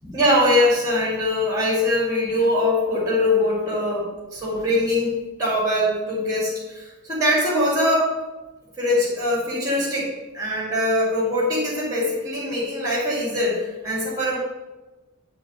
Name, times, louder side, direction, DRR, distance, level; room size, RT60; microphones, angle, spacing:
voice 1, 0.0-5.1 5.4-8.1 8.8-14.4, left 1 dB, 15° right, -9 dB, 2.4 m, -22 dB
9.7 x 3.9 x 5.2 m, 1.1 s
head